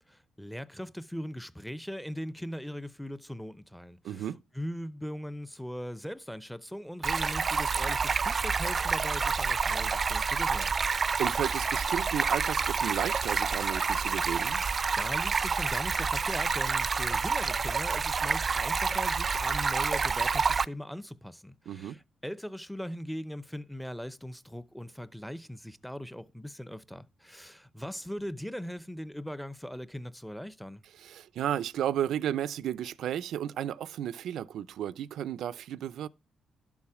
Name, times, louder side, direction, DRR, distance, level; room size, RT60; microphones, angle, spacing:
voice 1, 0.1-10.7 15.0-30.8, equal, ahead, 0.7 m, -40 dB
voice 2, 4.0-4.4 10.9-14.6 21.7-22.0 31.0-36.1, right 10 dB, 85° right, 0.5 m, -33 dB
Stream, 7.0-20.7, right 5 dB, 40° right, 0.5 m, -28 dB
12.0 x 7.2 x 4.9 m
cardioid pair, 110°, 0 cm